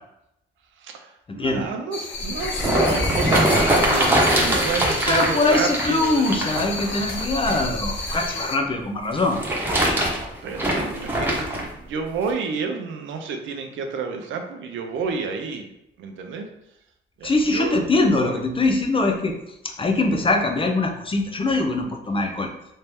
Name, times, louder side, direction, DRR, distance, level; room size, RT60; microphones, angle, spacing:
voice 1, 0.8-7.3 10.4-16.5 17.2-18.4, right 5 dB, 75° right, 4 dB, 0.7 m, -30 dB
sound 1, 1.9-8.6, left 3 dB, 65° left, 0.7 m, -31 dB
sound 2, 2.2-8.3 9.1-11.6 12.3-12.4, right 1 dB, 10° right, 1.1 m, -23 dB
voice 2, 4.8-9.4 17.2-19.4 19.6-22.5, left 2 dB, 25° left, 4 dB, 0.6 m, -22 dB
3.2 x 2.8 x 3.5 m, 0.81 s
cardioid pair, 90°, 20 cm